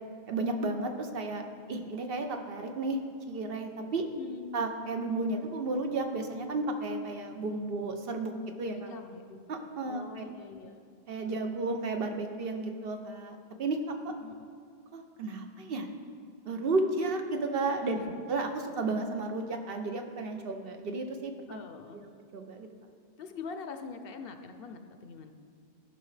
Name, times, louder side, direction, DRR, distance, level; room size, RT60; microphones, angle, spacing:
voice 1, 0.3-3.0 3.3-4.0 4.5-8.3 8.6-8.9 9.5-10.2 11.1-14.1 14.9-15.9 16.5-18.0 18.3-21.6 21.9-22.0 22.3-22.7, right 3 dB, 65° right, 5 dB, 0.9 m, -33 dB
voice 2, 4.2-4.6 8.9-9.4 9.8-10.8 14.2-14.5 17.9-18.1 21.5-22.1 23.2-25.3, left 5 dB, 65° left, 7 dB, 0.7 m, -44 dB
14.0 x 5.7 x 3.2 m, 2.4 s
omnidirectional pair, 1.1 m